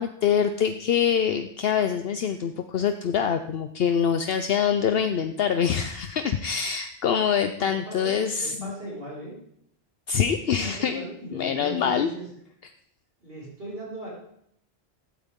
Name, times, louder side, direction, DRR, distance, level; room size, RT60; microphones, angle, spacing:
voice 1, 0.0-8.7 10.1-11.0 11.3-12.1, left 7 dB, 70° left, 8 dB, 0.9 m, -25 dB
voice 2, 7.5-9.3 10.4-12.3 13.2-14.1, right 1 dB, 65° right, -7 dB, 5.6 m, -38 dB
16.0 x 12.5 x 3.7 m, 0.70 s
omnidirectional pair, 1.1 m